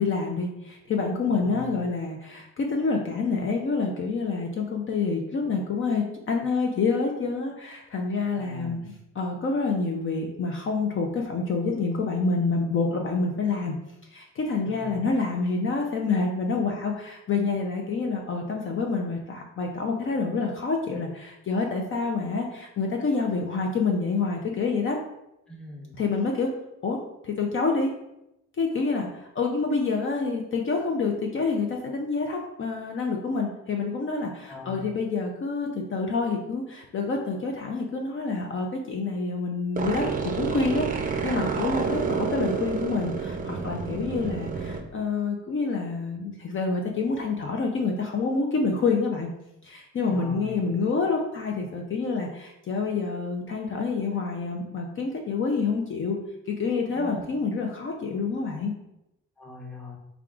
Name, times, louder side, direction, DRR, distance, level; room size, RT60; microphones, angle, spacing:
voice 1, 0.0-13.7 14.1-25.0 26.0-26.5 26.8-28.0 28.6-49.3 49.6-56.2 56.5-58.7, left 4 dB, 45° left, 1 dB, 0.5 m, -27 dB
voice 2, 1.3-1.7 8.4-8.9 14.6-15.0 25.5-26.0 34.5-34.8 41.7-42.2 50.1-50.6 56.9-57.3 59.4-60.0, left 1 dB, 5° left, -3 dB, 0.9 m, -41 dB
sound 1, 39.8-44.8, right 5 dB, 30° right, 0.5 m, -29 dB
3.5 x 2.4 x 3.5 m, 0.86 s
cardioid pair, 90°, 30 cm